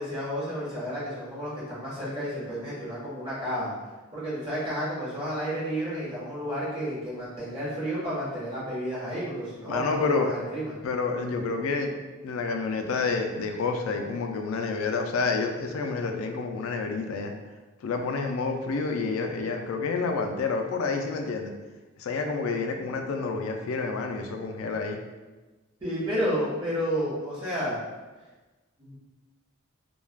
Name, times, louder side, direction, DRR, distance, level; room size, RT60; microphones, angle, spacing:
voice 1, 0.0-3.7 4.1-10.7 25.8-27.8 28.8-28.9, equal, 25° right, -9 dB, 1.1 m, -31 dB
voice 2, 9.7-10.3 10.8-11.9 12.2-17.3 17.8-21.5 22.0-25.0, left 4 dB, 80° left, 4 dB, 0.4 m, -29 dB
3.2 x 2.3 x 2.2 m, 1.2 s
head